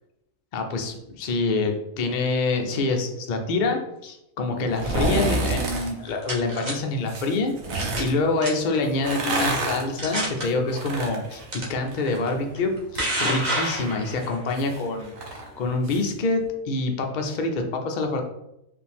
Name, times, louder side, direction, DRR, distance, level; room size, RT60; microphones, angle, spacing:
voice 1, 0.5-16.4 16.7-18.2, left 3 dB, 75° left, 3 dB, 0.4 m, -26 dB
sound 1, 4.7-5.9 7.1-8.1 8.9-12.3 12.6-16.1 16.4-16.5, right 2 dB, 65° right, 1.2 m, -29 dB
sound 2, 5.8-6.7 7.8-8.1 8.4-8.8 9.4-9.5 10.0-10.4 11.5-11.6 12.6-14.3, right 1 dB, 35° right, 1.0 m, -28 dB
4.9 x 2.6 x 3.5 m, 0.85 s
omnidirectional pair, 1.6 m